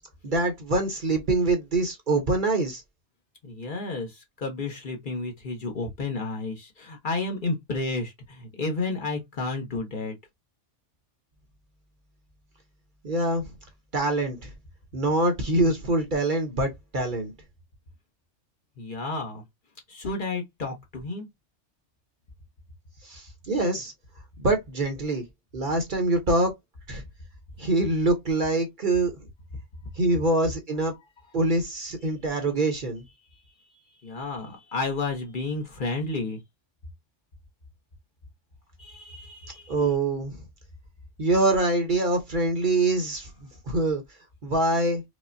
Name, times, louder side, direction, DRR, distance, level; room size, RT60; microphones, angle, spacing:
voice 1, 0.2-2.8 13.0-13.5 13.9-14.5 14.9-17.3 23.0-23.9 24.4-25.2 25.5-26.5 26.9-27.0 27.6-29.1 30.0-30.9 31.3-33.0 39.7-40.4 41.2-43.3 43.7-44.0 44.4-45.0, right 2 dB, 45° right, 0.9 m, -24 dB
voice 2, 3.4-10.2 18.8-19.4 19.9-21.3 34.0-36.4 38.8-39.7, left 3 dB, 45° left, 1.0 m, -31 dB
4.9 x 2.1 x 2.5 m
omnidirectional pair, 1.2 m